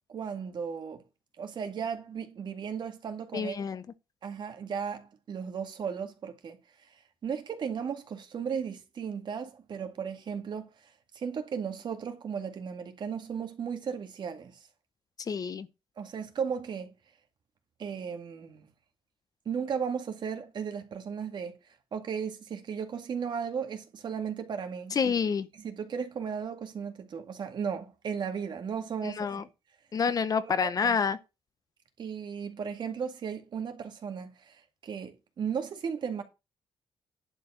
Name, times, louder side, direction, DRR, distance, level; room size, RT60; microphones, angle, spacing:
voice 1, 0.1-1.0 1.4-3.6 4.2-6.9 7.2-10.7 11.1-14.6 16.0-16.9 17.8-18.7 19.5-21.5 21.9-25.1 25.5-29.4 30.4-31.0 32.0-36.2, right 7 dB, 50° right, 2.0 m, -35 dB
voice 2, 3.3-3.8 15.3-15.7 24.9-25.5 29.0-29.4 29.9-31.2, left 6 dB, 40° left, 0.8 m, -28 dB
11.0 x 4.6 x 7.4 m
cardioid pair, 130°, 10 cm